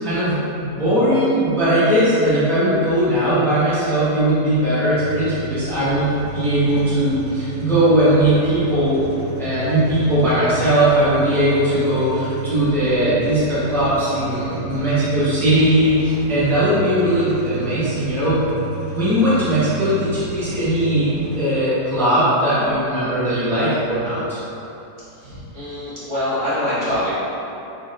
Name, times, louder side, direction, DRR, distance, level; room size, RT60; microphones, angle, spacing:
voice 1, 0.0-9.0 9.4-18.5 18.9-24.4, right 1 dB, ahead, -12 dB, 1.0 m, -19 dB
sound 1, 5.0-21.4, right 4 dB, 70° right, 2.3 m, -33 dB
voice 2, 25.2-27.1, left 1 dB, 50° right, -12 dB, 1.4 m, -24 dB
4.7 x 3.9 x 2.5 m, 2.9 s
omnidirectional pair, 1.8 m